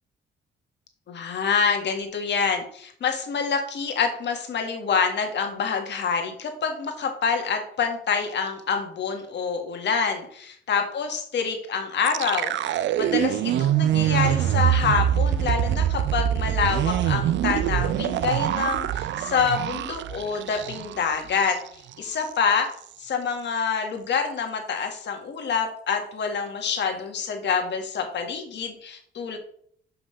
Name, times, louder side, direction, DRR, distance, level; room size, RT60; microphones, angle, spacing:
voice 1, 1.1-21.6 22.0-22.7 23.0-29.4, left 6 dB, 60° left, 4 dB, 1.8 m, -27 dB
sound 1, 12.0-21.1 21.4-21.5 21.9-22.3, right 11 dB, 65° right, 0.5 m, -24 dB
5.8 x 5.5 x 5.6 m, 0.62 s
cardioid pair, 90°, 20 cm